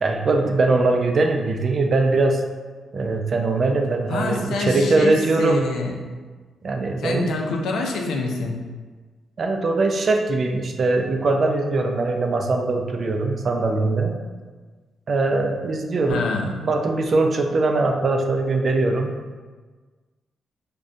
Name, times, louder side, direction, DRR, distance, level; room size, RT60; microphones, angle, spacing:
voice 1, 0.0-2.4 2.9-5.7 6.6-7.3 9.4-14.1 15.1-16.3 16.6-19.1, right 3 dB, 45° right, 4 dB, 0.4 m, -21 dB
voice 2, 4.1-6.0 7.0-8.6 16.1-16.6, left 3 dB, 90° left, 1 dB, 0.5 m, -26 dB
4.9 x 2.2 x 2.6 m, 1.4 s
cardioid pair, 110°, 0 cm